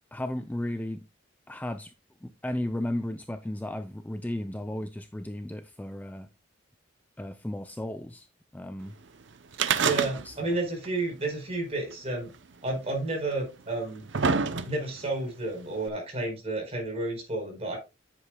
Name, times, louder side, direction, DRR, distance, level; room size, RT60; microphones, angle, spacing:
voice 1, 0.1-1.0 1.5-1.9 2.2-6.3 7.2-8.3 8.5-9.0 10.2-10.3, left 1 dB, 10° left, 0.4 m, -34 dB
sound 1, 9.5-10.6 10.8-10.9 11.9-12.0 12.9-13.0 13.7-15.0 15.9-16.0, right 5 dB, 60° right, 0.7 m, -26 dB
voice 2, 9.8-12.3 12.6-14.0 14.6-17.8, right 2 dB, 30° right, 4.6 m, -31 dB
10.0 x 8.2 x 2.3 m
head